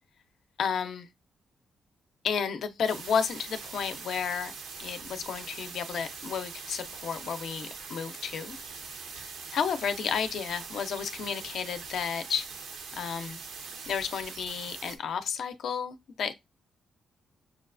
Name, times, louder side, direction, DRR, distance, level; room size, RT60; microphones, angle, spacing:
voice 1, 0.6-1.1 2.2-4.5 4.8-8.6 8.9-9.3 9.5-12.5 12.9-13.4 13.9-16.3, left 7 dB, 75° left, 0.6 m, -32 dB
sound 1, 2.9-15.0, right 5 dB, 85° right, 0.6 m, -42 dB
6.0 x 2.3 x 2.4 m
supercardioid pair, 60°, 0 cm